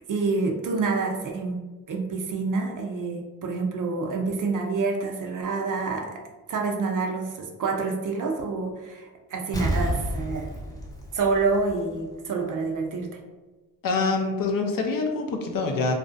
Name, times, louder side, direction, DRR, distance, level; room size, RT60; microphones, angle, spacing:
voice 1, 0.1-1.6 1.9-6.2 6.5-10.5 11.1-13.2, right 4 dB, 50° right, 2 dB, 0.5 m, -27 dB
Explosion, 9.5-12.1 12.5-12.6, equal, 10° left, 0.6 m, -30 dB
voice 2, 13.8-15.9, left 3 dB, 55° left, 2 dB, 0.5 m, -25 dB
2.5 x 2.1 x 2.5 m, 1.2 s
supercardioid pair, 45°, 41 cm